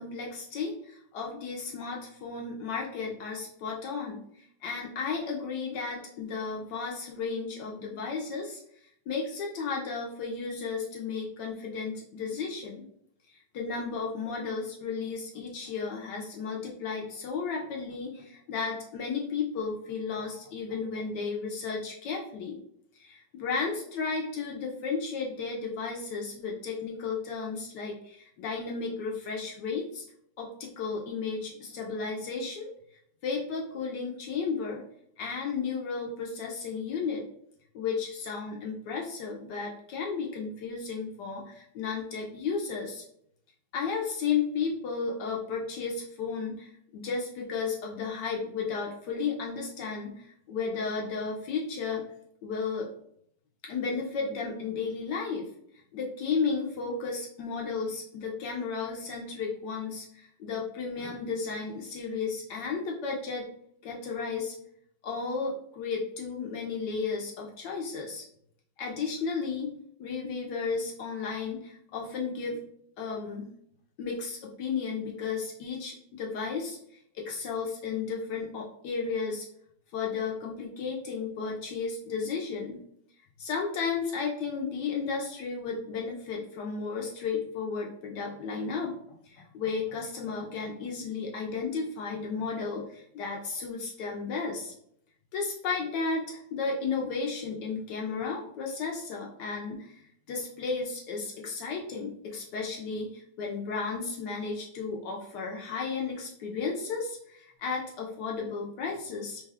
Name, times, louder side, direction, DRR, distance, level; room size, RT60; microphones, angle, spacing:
voice 1, 0.0-4.2 4.6-8.6 9.1-12.8 13.3-22.6 22.9-30.0 30.4-32.7 33.2-34.8 35.2-37.2 37.7-43.0 43.7-52.0 52.4-52.9 53.6-63.5 63.8-64.5 65.0-68.2 68.8-69.7 70.0-72.6 73.0-73.5 74.0-76.8 77.1-79.5 79.9-82.8 83.4-88.9 89.2-94.7 95.3-109.4, left 5 dB, 75° left, -1 dB, 1.1 m, -33 dB
3.3 x 2.2 x 3.4 m, 0.70 s
omnidirectional pair, 2.0 m